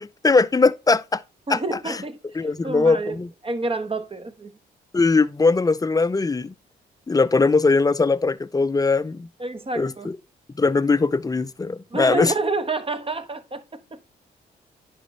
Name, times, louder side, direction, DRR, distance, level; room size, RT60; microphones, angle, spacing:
voice 1, 0.2-1.2 1.5-1.6 1.9-2.0 2.4-3.3 4.9-6.5 7.1-9.3 9.8-10.2 10.6-12.3, left 3 dB, 20° left, 0.5 m, -20 dB
voice 2, 1.5-3.2 3.4-4.5 9.4-10.1 11.9-14.0, right 3 dB, 25° right, 1.2 m, -29 dB
9.9 x 5.2 x 3.3 m
supercardioid pair, 55°, 20 cm